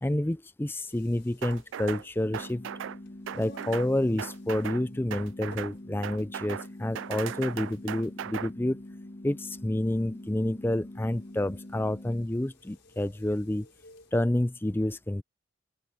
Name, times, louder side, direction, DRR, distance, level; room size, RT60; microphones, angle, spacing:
voice 1, 0.0-2.7 3.3-8.8 9.2-13.7 14.1-15.2, left 1 dB, 10° left, 0.5 m, -29 dB
sound 1, 0.6-14.2, left 1 dB, 65° left, 6.6 m, -57 dB
sound 2, 1.4-2.0 2.3-3.0 3.3-3.9 4.2-4.8 5.1-5.7 6.0-6.7 6.9-8.5, right 9 dB, 70° right, 0.3 m, -37 dB
sound 3, 2.2-12.2, left 1 dB, 30° left, 0.8 m, -45 dB
open air
head